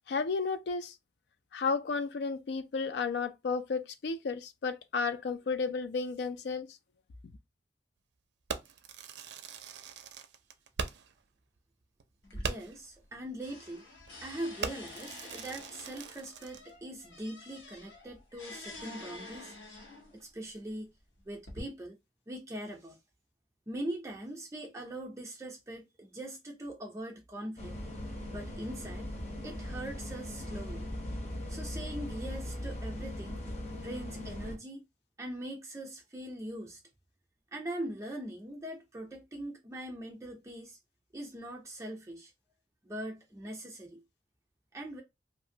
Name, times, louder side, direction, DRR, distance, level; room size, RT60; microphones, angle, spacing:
voice 1, 0.1-0.9 1.5-6.7, left 4 dB, 70° left, 0.3 m, -33 dB
Fireworks, 8.5-11.2 11.6-11.7 12.0-12.1 12.4-12.9 13.5-13.7 14.0-14.2 14.6-16.7, right 5 dB, 75° right, 0.4 m, -40 dB
sound 1, 12.2-13.1 13.4-20.2 21.0-21.6, left 2 dB, 85° left, 1.0 m, -48 dB
voice 2, 12.3-13.8 14.2-19.5 20.1-20.9 21.3-22.0 22.3-23.0 23.7-27.7 28.3-29.1 29.4-30.9 31.5-33.4 33.8-34.8 35.2-36.8 37.5-40.8 41.1-42.3 42.8-44.0 44.7-45.0, right 1 dB, 15° right, 0.4 m, -41 dB
sound 2, 27.6-34.6, left 1 dB, 40° left, 0.7 m, -39 dB
2.8 x 2.5 x 2.6 m
head